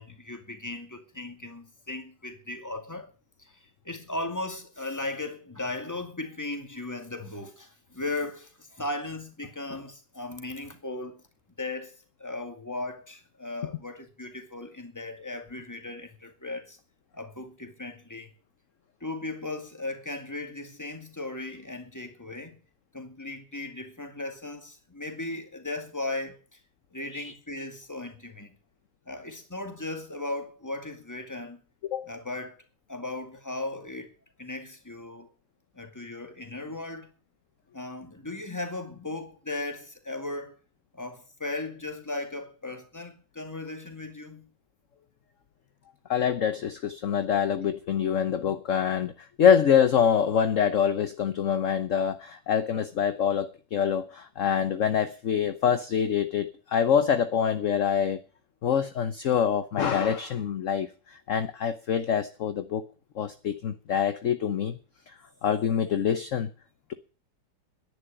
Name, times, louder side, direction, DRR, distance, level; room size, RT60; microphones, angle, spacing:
voice 1, 0.0-3.1 3.4-11.2 11.6-11.9 12.2-16.8 17.1-18.3 19.0-22.6 22.9-26.6 26.9-28.5 29.1-31.6 32.1-32.6 32.9-34.1 34.4-35.3 35.7-37.1 37.7-40.6 40.9-44.5, left 2 dB, 10° left, 2.3 m, -37 dB
voice 2, 46.1-58.2 58.6-62.8 63.1-64.8 65.1-65.2 65.4-66.5, left 8 dB, 55° left, 1.1 m, -25 dB
11.0 x 10.0 x 10.0 m
omnidirectional pair, 1.9 m